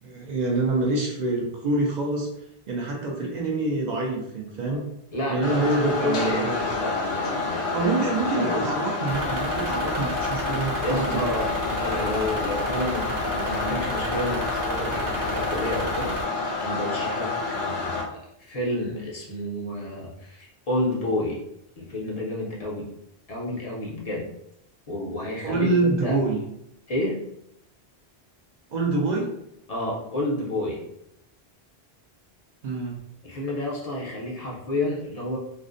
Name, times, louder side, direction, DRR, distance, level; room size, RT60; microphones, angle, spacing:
voice 1, 0.0-2.3 2.7-4.9 5.3-6.6 7.7-11.3 25.4-26.4 28.7-29.3 32.6-32.9, right 2 dB, 55° right, -1 dB, 0.5 m, -26 dB
voice 2, 5.1-8.7 10.8-21.4 21.8-22.9 23.3-24.3 24.9-26.2 26.9-27.2 29.7-30.8 33.2-35.4, left 1 dB, 45° left, -4 dB, 0.6 m, -30 dB
sound 1, 5.4-18.0, left 3 dB, 75° left, 0.8 m, -29 dB
sound 2, 9.1-16.2, right 1 dB, 90° right, 0.9 m, -33 dB
2.4 x 2.0 x 2.5 m, 0.77 s
omnidirectional pair, 1.1 m